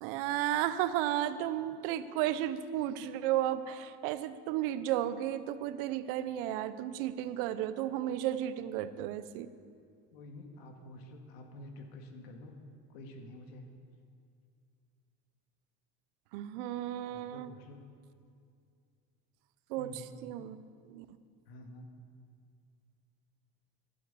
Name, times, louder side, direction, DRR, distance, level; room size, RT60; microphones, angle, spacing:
voice 1, 0.0-9.5 16.3-17.5 19.7-19.9 20.2-20.5 20.9-21.1, right 12 dB, 65° right, 13 dB, 0.7 m, -33 dB
voice 2, 10.1-12.6 12.9-13.7 17.1-17.8 19.8-20.2 21.5-21.9, left 1 dB, 85° left, 4 dB, 2.0 m, -49 dB
12.5 x 11.5 x 6.9 m, 2.3 s
cardioid pair, 170°, 29 cm